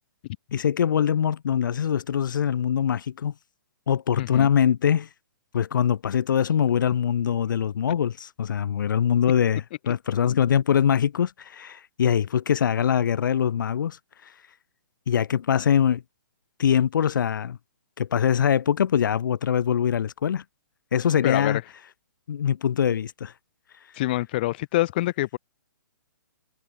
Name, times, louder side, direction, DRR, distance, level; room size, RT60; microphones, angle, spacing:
voice 1, 0.5-3.3 3.9-5.1 5.5-14.0 15.1-16.0 16.6-17.6 18.0-20.4 20.9-21.6 22.3-23.3, left 8 dB, 70° left, 0.4 m, -23 dB
voice 2, 4.2-4.5 21.2-21.6 23.9-25.4, left 17 dB, 25° left, 1.6 m, -26 dB
hypercardioid pair, 175°, 11 cm